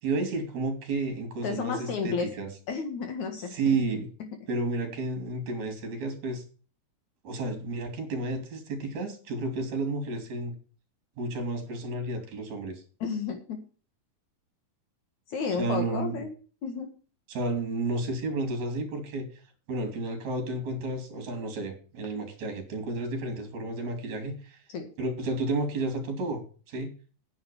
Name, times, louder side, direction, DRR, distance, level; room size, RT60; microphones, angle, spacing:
voice 1, 0.0-2.5 3.5-4.1 4.5-6.4 7.2-10.5 11.2-12.8 15.6-16.2 17.3-19.3 19.7-24.6 25.0-26.9, right 2 dB, 55° right, 7 dB, 3.8 m, -31 dB
voice 2, 1.4-2.3 2.7-3.5 4.2-4.3 13.0-13.6 15.3-16.4 16.6-16.9 24.7-24.9, left 5 dB, 60° left, 6 dB, 2.8 m, -32 dB
9.6 x 7.3 x 7.0 m, 0.38 s
omnidirectional pair, 4.0 m